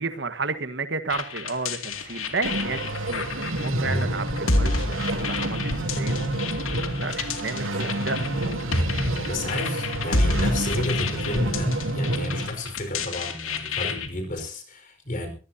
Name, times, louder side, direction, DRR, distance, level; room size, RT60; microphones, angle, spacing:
voice 1, 0.0-6.2 7.0-8.3, right 3 dB, 55° right, 11 dB, 1.4 m, -32 dB
sound 1, 1.1-14.1, left 3 dB, 85° left, 2.4 m, -30 dB
sound 2, 1.9-12.8, right 2 dB, 30° right, 5.4 m, -48 dB
sound 3, 2.4-12.5, right 1 dB, 85° right, 3.2 m, -29 dB
voice 2, 3.8-4.2 9.2-15.3, left 1 dB, 40° left, 7 dB, 4.8 m, -30 dB
22.5 x 17.0 x 2.8 m, 0.34 s
head